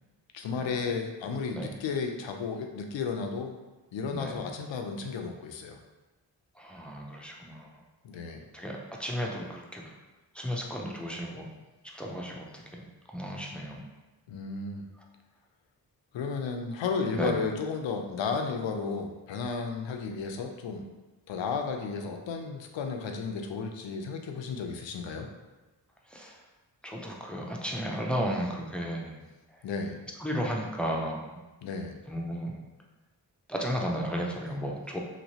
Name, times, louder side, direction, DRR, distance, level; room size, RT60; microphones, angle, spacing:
voice 1, 0.3-3.5 3.9-5.8 8.0-8.4 14.3-14.8 16.1-20.9 21.3-25.3 29.6-30.0 31.6-32.0, left 5 dB, 85° left, 3 dB, 0.5 m, -33 dB
voice 2, 1.5-1.8 4.1-4.4 6.6-7.8 8.5-9.9 10.3-11.5 11.9-13.8 17.1-17.4 26.1-26.4 26.8-29.2 30.2-31.4 32.1-32.6 33.5-35.0, equal, 5° left, -1 dB, 0.4 m, -34 dB
3.0 x 2.9 x 2.8 m, 1.2 s
wide cardioid pair, 95°, 43 cm